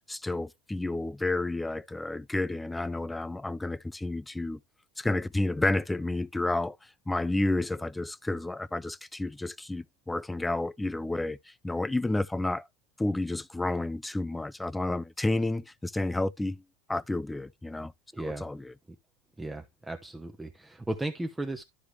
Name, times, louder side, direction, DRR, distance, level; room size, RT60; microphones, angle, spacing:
voice 1, 0.1-4.6 5.0-6.8 7.1-12.7 13.0-16.6 16.9-17.9 18.2-18.7, left 2 dB, 10° left, 0.5 m, -30 dB
voice 2, 18.1-18.5 19.4-21.6, right 1 dB, 10° right, 1.0 m, -35 dB
12.0 x 4.8 x 3.3 m
supercardioid pair, 120°, 0 cm